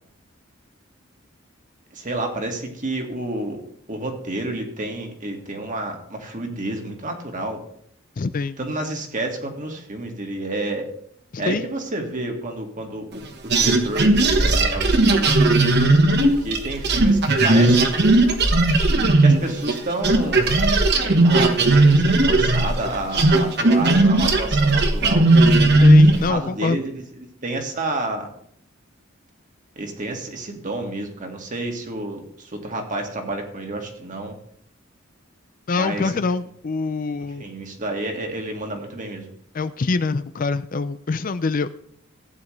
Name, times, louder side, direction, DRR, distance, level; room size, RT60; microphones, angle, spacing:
voice 1, 1.9-3.6 3.9-7.6 8.6-10.9 11.4-15.9 16.2-18.2 19.2-20.7 20.9-25.3 26.0-28.3 29.8-34.4 35.7-36.2 37.4-39.3, right 2 dB, 40° right, 3 dB, 1.9 m, -30 dB
voice 2, 8.2-8.6 11.3-11.6 25.7-26.8 35.7-37.4 39.5-41.7, left 4 dB, 40° left, 13 dB, 0.5 m, -25 dB
sound 1, 13.5-19.8 20.0-26.3, right 2 dB, 55° right, 1.3 m, -16 dB
15.5 x 9.4 x 3.2 m, 0.66 s
head